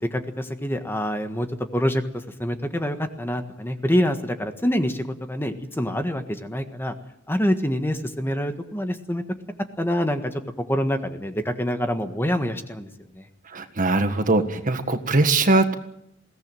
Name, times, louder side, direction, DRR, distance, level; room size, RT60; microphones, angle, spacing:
voice 1, 0.0-6.9 7.3-9.2 9.8-10.4 10.7-12.9 13.1-13.3, equal, 10° left, 7 dB, 1.5 m, -26 dB
voice 2, 13.5-15.8, right 2 dB, 45° right, 8 dB, 1.7 m, -21 dB
21.5 x 17.5 x 9.1 m, 0.77 s
head